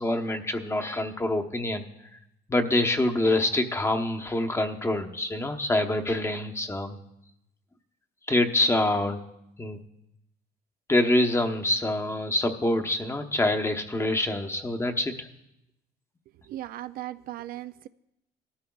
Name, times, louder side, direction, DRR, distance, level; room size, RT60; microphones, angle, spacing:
voice 1, 0.0-1.8 2.5-7.0 8.3-9.2 9.6-9.8 10.9-15.3, left 1 dB, 15° left, 5 dB, 0.9 m, -26 dB
voice 2, 16.5-17.9, right 14 dB, 60° right, 13 dB, 0.4 m, -37 dB
18.0 x 13.0 x 2.3 m, 0.85 s
cardioid pair, 110°, 17 cm